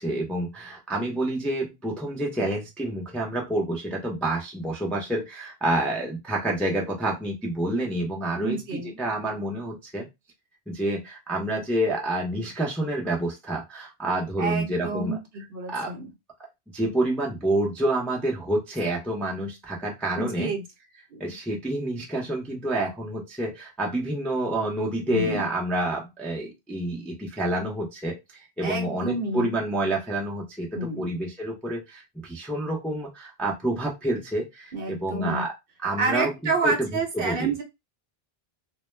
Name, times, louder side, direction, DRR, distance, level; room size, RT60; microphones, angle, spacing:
voice 1, 0.0-10.1 10.7-15.2 15.7-15.9 16.7-20.5 21.2-35.5 35.8-36.9 37.1-37.5, right 1 dB, ahead, -2 dB, 0.4 m, -28 dB
voice 2, 8.4-9.0 14.4-16.1 20.2-20.6 21.1-21.2 25.1-25.4 28.6-29.6 30.7-31.2 34.7-35.4 36.0-37.6, right 3 dB, 65° right, 2 dB, 0.9 m, -29 dB
2.1 x 2.0 x 3.1 m, 0.22 s
omnidirectional pair, 1.1 m